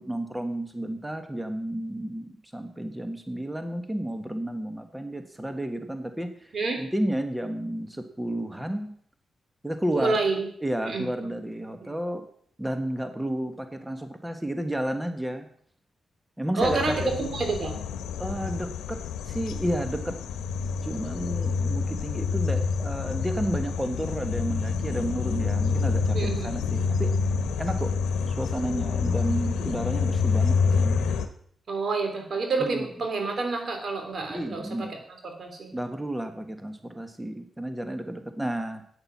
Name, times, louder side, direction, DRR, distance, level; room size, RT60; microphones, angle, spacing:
voice 1, 0.0-8.9 9.6-10.2 10.6-12.2 12.6-15.5 16.4-17.1 18.2-19.0 19.3-20.2 20.8-27.9 28.3-31.0 32.6-32.8 34.3-34.9 35.7-38.8, right 1 dB, 10° right, 7 dB, 1.4 m, -31 dB
voice 2, 6.5-6.8 10.0-10.5 10.8-11.1 11.8-11.9 16.5-17.7 26.1-26.6 31.7-35.0 35.2-35.7, right 3 dB, 55° right, 4 dB, 3.3 m, -28 dB
sound 1, 16.6-31.3, left 5 dB, 90° left, 0.9 m, -27 dB
8.9 x 8.7 x 7.3 m, 0.63 s
cardioid pair, 60°, 0 cm